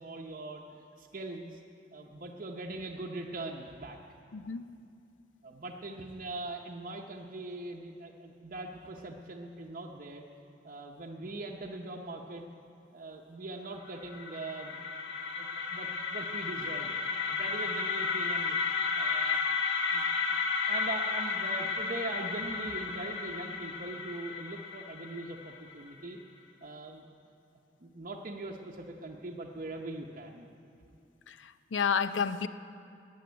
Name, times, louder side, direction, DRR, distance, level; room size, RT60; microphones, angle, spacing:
voice 1, 0.0-1.6 1.9-4.0 5.4-10.2 10.6-12.5 12.9-14.8 15.4-17.0 17.3-19.4 19.9-20.4 20.7-26.2 26.6-27.0 27.8-30.5, right 2 dB, 45° right, -1 dB, 0.8 m, -41 dB
voice 2, 4.3-4.8 31.3-32.5, left 6 dB, 90° left, 12 dB, 0.5 m, -31 dB
sound 1, 13.9-25.8, left 5 dB, 65° left, 1.4 m, -33 dB
13.0 x 8.7 x 9.4 m, 2.6 s
head